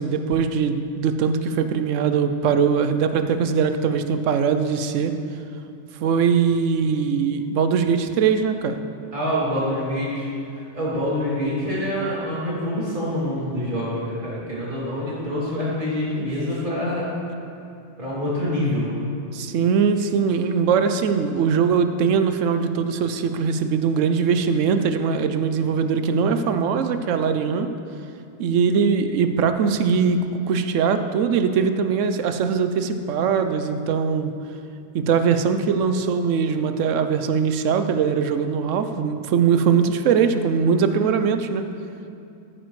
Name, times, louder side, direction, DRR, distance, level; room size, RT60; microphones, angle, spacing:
voice 1, 0.0-5.2 6.0-8.8 16.2-16.3 19.3-27.7 28.4-34.3 34.9-41.7, right 6 dB, 85° right, 9 dB, 1.0 m, -21 dB
voice 2, 9.1-17.1 18.0-18.9, left 1 dB, 40° right, -8 dB, 3.0 m, -26 dB
13.5 x 9.3 x 3.2 m, 2.6 s
omnidirectional pair, 1.3 m